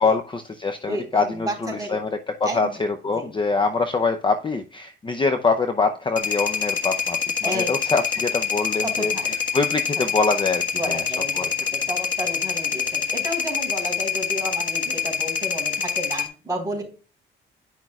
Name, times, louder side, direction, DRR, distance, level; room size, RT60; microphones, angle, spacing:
voice 1, 0.0-7.2 7.5-9.1 9.5-11.0 11.4-11.5, left 4 dB, 25° left, 7 dB, 0.6 m, -24 dB
voice 2, 0.8-2.0 2.4-2.7 3.1-3.3 7.4-7.7 8.8-9.3 10.0-10.1 10.8-16.8, right 1 dB, 15° right, 1 dB, 4.0 m, -31 dB
sound 1, 6.2-16.3, left 7 dB, 40° left, 1.5 m, -25 dB
10.0 x 6.2 x 2.3 m, 0.34 s
cardioid pair, 90°, 20 cm